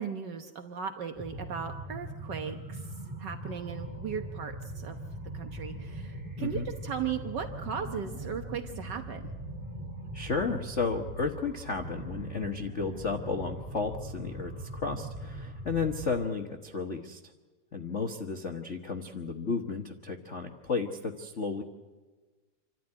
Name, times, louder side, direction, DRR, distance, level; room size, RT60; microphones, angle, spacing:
voice 1, 0.0-2.9 3.2-5.0 5.3-9.3, right 7 dB, 70° right, 6 dB, 1.0 m, -37 dB
sound 1, 1.1-16.1, right 1 dB, 5° right, 7.2 m, -41 dB
voice 2, 6.4-6.7 10.1-17.2 17.7-21.6, left 4 dB, 65° left, 4 dB, 0.7 m, -33 dB
27.5 x 13.0 x 9.9 m, 1.3 s
omnidirectional pair, 3.4 m